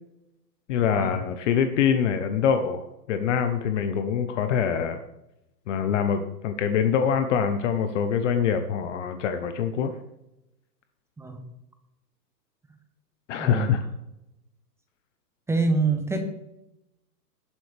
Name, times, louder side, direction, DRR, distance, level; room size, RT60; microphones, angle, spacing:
voice 1, 0.7-5.0 5.7-10.0 13.3-13.8, left 7 dB, 45° left, 9 dB, 1.0 m, -24 dB
voice 2, 13.4-13.7 15.5-16.2, right 3 dB, 5° right, 6 dB, 0.9 m, -25 dB
18.5 x 7.8 x 3.5 m, 0.90 s
hypercardioid pair, 135°, 50 cm